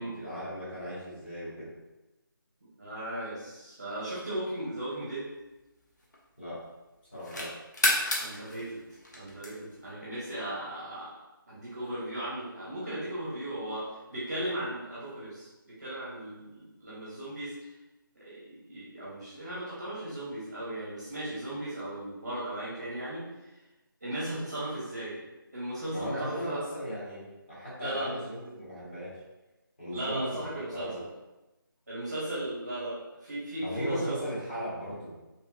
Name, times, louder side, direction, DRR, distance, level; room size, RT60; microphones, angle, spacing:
voice 1, 0.0-1.7 6.4-6.6 7.1-7.5 25.9-29.2 29.8-31.0 33.6-35.2, equal, 25° left, -11 dB, 1.2 m, -37 dB
voice 2, 2.8-5.3 7.8-8.8 9.1-11.1 11.5-17.5 18.1-23.2 24.0-25.2 25.5-26.6 27.8-28.1 29.9-31.0 31.9-34.2, right 1 dB, 25° right, -9 dB, 0.6 m, -36 dB
sound 1, 4.7-6.5 6.9-9.9, left 1 dB, 50° left, 0.6 m, -32 dB
2.8 x 2.6 x 2.3 m, 1.0 s
figure-of-eight pair, 180°, 12 cm